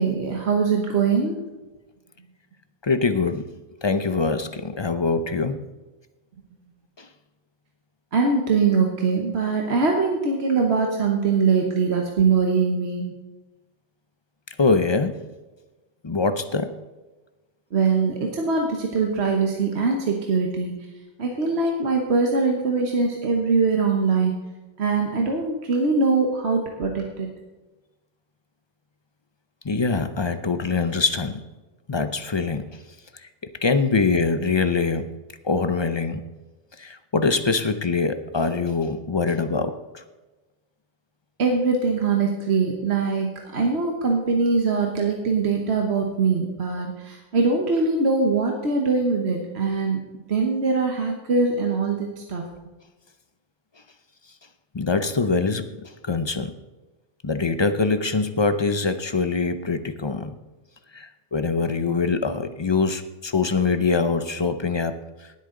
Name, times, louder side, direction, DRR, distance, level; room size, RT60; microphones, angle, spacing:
voice 1, 0.0-1.4 8.1-13.1 17.7-20.7 21.2-24.3 24.8-27.3 41.4-50.0 50.3-52.4, right 4 dB, 65° right, 1 dB, 1.5 m, -22 dB
voice 2, 2.8-3.5 3.8-5.6 7.0-7.1 14.6-15.3 16.0-16.8 29.6-31.4 31.9-32.6 33.6-35.1 35.4-36.3 36.8-40.0 54.7-55.8 56.0-56.5 57.2-60.4 60.9-65.0, left 4 dB, 30° left, 10 dB, 0.6 m, -23 dB
18.0 x 8.5 x 3.9 m, 1.1 s
omnidirectional pair, 1.2 m